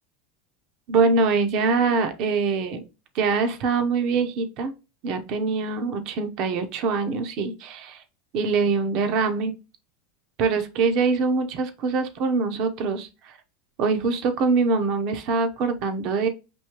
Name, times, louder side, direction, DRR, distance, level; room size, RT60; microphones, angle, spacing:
voice 1, 0.9-2.8 3.1-4.7 5.0-8.0 8.3-9.5 10.4-13.4 13.8-16.3, right 4 dB, 50° right, 8 dB, 0.8 m, -24 dB
6.1 x 2.7 x 3.0 m, 0.29 s
supercardioid pair, 130°, 0 cm